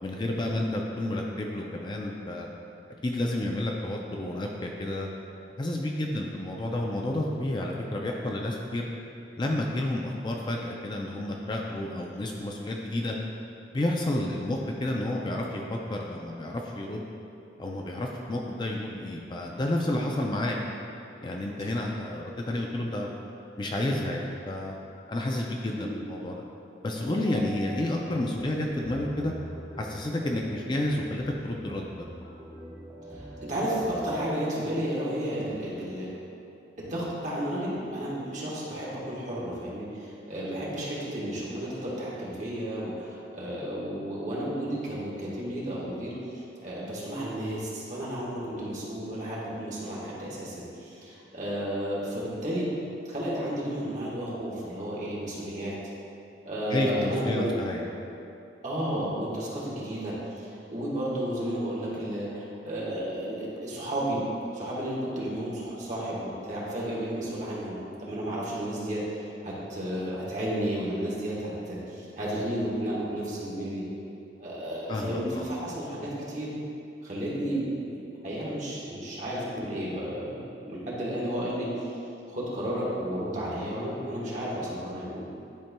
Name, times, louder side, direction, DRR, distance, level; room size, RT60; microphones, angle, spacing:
voice 1, 0.0-2.5 3.0-5.1 5.6-8.9 9.4-13.2 13.7-17.1 17.6-20.6 21.2-23.1 23.6-24.8 25.1-26.4 26.8-29.3 29.8-32.1 56.7-57.8 74.9-75.5, left 1 dB, 25° left, 0 dB, 0.4 m, -30 dB
sound 1, 26.9-34.4, equal, 15° right, 1.0 m, -44 dB
voice 2, 33.1-36.0 36.8-52.7 53.0-55.8 56.4-57.5 58.6-64.2 64.5-73.9 74.4-76.5 77.0-77.9 78.2-81.7 82.3-85.2, equal, 40° right, -6 dB, 1.3 m, -32 dB
10.5 x 4.2 x 2.2 m, 2.7 s
head